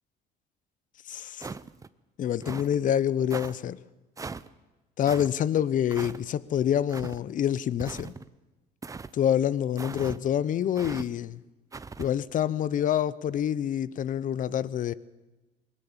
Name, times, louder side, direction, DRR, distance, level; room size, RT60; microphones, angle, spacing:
voice 1, 1.1-1.5 2.2-3.8 5.0-8.1 9.1-11.4 12.0-14.9, left 10 dB, 50° left, 0.7 m, -27 dB
sound 1, 1.4-1.9 2.4-2.8 3.3-3.5 4.2-4.5 5.1-5.3 5.9-6.2 6.9-7.2 7.8-8.3 8.8-9.1 9.8-10.2 10.8-11.1 11.7-12.1, right 4 dB, 20° right, 0.6 m, -39 dB
21.0 x 18.0 x 7.4 m
cardioid pair, 110°, 17 cm